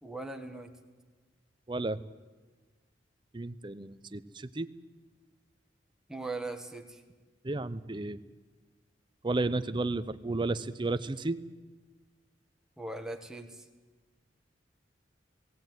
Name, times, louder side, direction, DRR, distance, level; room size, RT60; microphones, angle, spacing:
voice 1, 0.0-0.7 6.1-7.0 12.8-13.6, right 2 dB, 5° right, 4 dB, 1.5 m, -39 dB
voice 2, 1.7-2.0 3.3-4.7 7.4-8.2 9.2-11.4, right 2 dB, 25° right, 12 dB, 0.6 m, -32 dB
18.5 x 17.0 x 9.3 m, 1.3 s
head